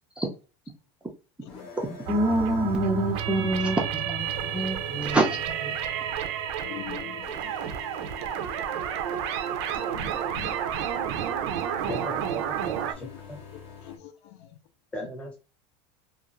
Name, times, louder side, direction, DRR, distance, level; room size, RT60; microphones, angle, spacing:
sound 1, 1.5-14.0, left 5 dB, 40° left, 0.7 m, -45 dB
voice 1, 1.8-5.7, right 1 dB, 10° right, 0 dB, 0.3 m, -26 dB
sound 2, 2.1-12.9, right 9 dB, 85° right, 0.4 m, -31 dB
voice 2, 6.6-7.6 9.7-10.6 10.9-11.1 13.0-13.2 13.5-14.6 15.0-15.1, left 14 dB, 90° left, 8 dB, 0.5 m, -44 dB
voice 3, 11.9-13.4 14.9-15.4, left 1 dB, 10° left, 1 dB, 0.7 m, -38 dB
2.4 x 2.4 x 2.9 m, 0.33 s
cardioid pair, 170°, 14 cm